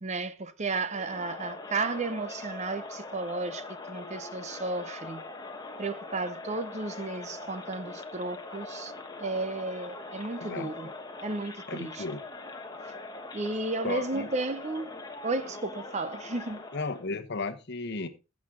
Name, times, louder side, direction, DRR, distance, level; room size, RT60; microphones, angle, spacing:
voice 1, 0.0-5.2 5.8-8.9 9.2-10.9 11.2-12.0 13.3-14.9 15.2-16.6, right 3 dB, 35° right, 0.7 m, -33 dB
Crowd, 0.8-17.1, left 3 dB, 20° left, 1.2 m, -42 dB
voice 2, 11.7-12.2 13.8-14.3 16.7-18.1, left 3 dB, 55° left, 1.1 m, -34 dB
15.0 x 6.2 x 3.7 m
head